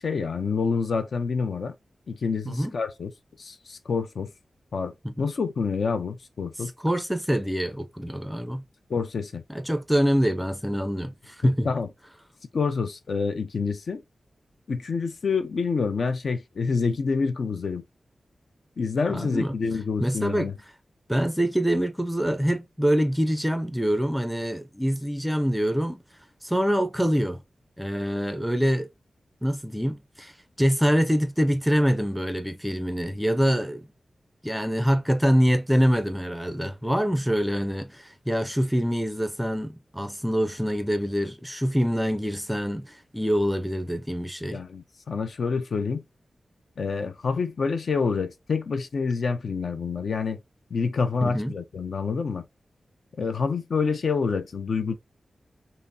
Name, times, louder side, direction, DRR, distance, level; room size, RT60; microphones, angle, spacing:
voice 1, 0.0-1.7 2.1-3.1 3.4-4.3 4.7-4.9 5.2-6.7 8.9-9.4 11.4-11.9 12.5-14.0 14.7-17.8 18.8-20.5 44.5-46.0 46.8-50.4 50.7-52.5 53.2-54.9, left 5 dB, 65° left, 0.5 m, -27 dB
voice 2, 6.8-8.6 9.5-11.7 19.1-19.6 20.0-20.5 21.1-26.0 26.4-27.4 27.8-28.9 29.4-30.3 30.6-33.9 34.4-44.6 51.2-51.5, equal, 5° right, 0.5 m, -25 dB
5.5 x 2.0 x 2.6 m
wide cardioid pair, 150°, 0 cm